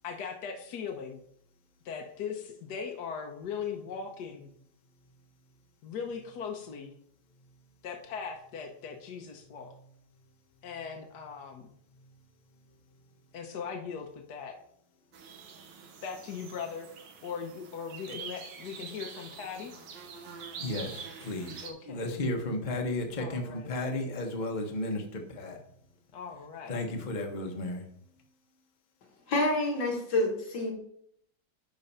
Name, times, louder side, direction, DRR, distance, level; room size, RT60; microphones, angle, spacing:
voice 1, 0.0-1.2 1.8-4.5 5.8-6.9 7.8-9.7 10.6-11.7 13.3-14.5 16.0-16.9 17.2-19.7 21.6-22.1 23.2-23.8 26.1-26.8, left 6 dB, 65° left, 2 dB, 1.4 m, -39 dB
sound 1, 15.1-21.7, right 6 dB, 80° right, 1.8 m, -45 dB
voice 2, 20.6-25.6 26.7-27.8, left 1 dB, 30° left, 3 dB, 1.1 m, -34 dB
voice 3, 29.3-30.7, left 2 dB, 90° left, 1 dB, 2.5 m, -28 dB
10.5 x 3.9 x 5.6 m, 0.69 s
omnidirectional pair, 2.0 m